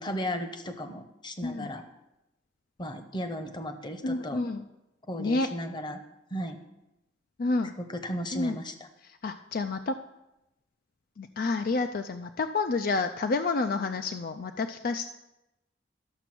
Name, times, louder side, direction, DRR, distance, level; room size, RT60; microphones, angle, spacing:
voice 1, 0.0-1.8 2.8-4.4 5.1-6.0 6.3-6.6 7.8-8.9, equal, 25° left, 8 dB, 0.9 m, -35 dB
voice 2, 4.0-4.6 5.2-5.5 7.4-7.7 8.3-8.6 9.0-9.9 11.2-15.1, left 3 dB, 55° left, 8 dB, 0.4 m, -29 dB
12.0 x 6.9 x 6.0 m, 0.93 s
head